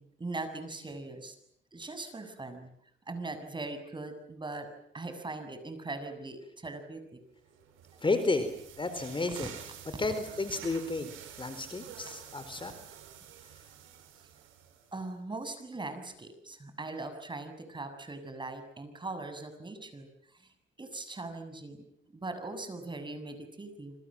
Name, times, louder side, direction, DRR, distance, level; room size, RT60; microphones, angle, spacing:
voice 1, 0.0-1.4 1.7-2.7 3.1-4.7 4.9-7.2 9.4-9.5 14.9-20.1 20.3-20.5 20.8-21.8 22.1-23.9, right 2 dB, 25° right, 8 dB, 7.2 m, -40 dB
sound 1, 7.5-15.0, right 9 dB, 85° right, 6.9 m, -49 dB
voice 2, 8.0-9.6 10.0-11.1 11.4-12.7, left 3 dB, 25° left, 10 dB, 4.2 m, -32 dB
28.0 x 26.0 x 7.7 m, 0.70 s
cardioid pair, 90°, 20 cm